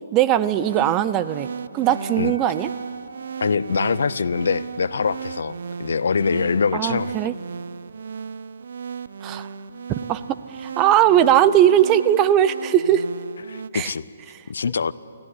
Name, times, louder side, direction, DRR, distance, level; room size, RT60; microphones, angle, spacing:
voice 1, 0.1-1.5 1.7-2.7 6.7-7.3 9.2-9.5 9.9-10.2 10.5-13.1 13.7-13.9 14.3-14.4, right 11 dB, 25° right, 15 dB, 0.6 m, -19 dB
sound 1, 0.6-13.7, right 6 dB, 70° right, 0.6 m, -35 dB
Wind instrument woodwind instrument, 1.8-5.7, right 3 dB, 85° right, 1.0 m, -43 dB
voice 2, 3.4-7.1 13.5-14.1 14.5-14.9, left 5 dB, 75° left, 18 dB, 0.6 m, -23 dB
19.0 x 15.0 x 9.8 m, 2.7 s
hypercardioid pair, 145°, 0 cm